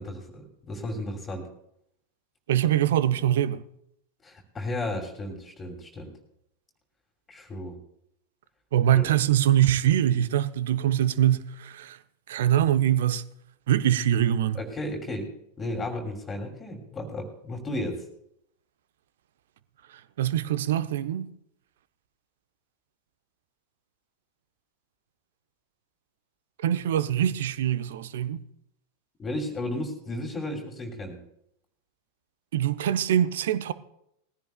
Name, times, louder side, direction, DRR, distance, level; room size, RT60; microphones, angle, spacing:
voice 1, 0.0-1.5 4.2-6.1 7.3-7.8 8.9-9.1 14.5-18.1 29.2-31.2, left 1 dB, 15° left, 2.7 m, -34 dB
voice 2, 2.5-3.6 8.7-12.0 12.3-13.3 13.7-14.6 19.9-21.3 26.6-28.4 32.5-33.7, right 11 dB, 60° right, 0.7 m, -23 dB
20.5 x 15.5 x 2.3 m
figure-of-eight pair, 90°, 0 cm